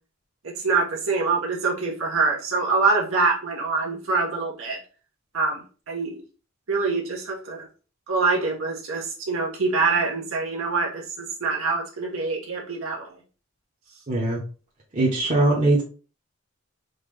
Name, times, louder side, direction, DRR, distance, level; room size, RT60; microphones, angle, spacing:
voice 1, 0.4-4.8 5.3-6.1 6.7-7.6 8.1-13.1, right 4 dB, 80° right, -1 dB, 1.0 m, -25 dB
voice 2, 14.1-14.4 14.9-15.8, right 2 dB, 35° right, -5 dB, 0.9 m, -21 dB
3.9 x 2.8 x 3.2 m, 0.36 s
head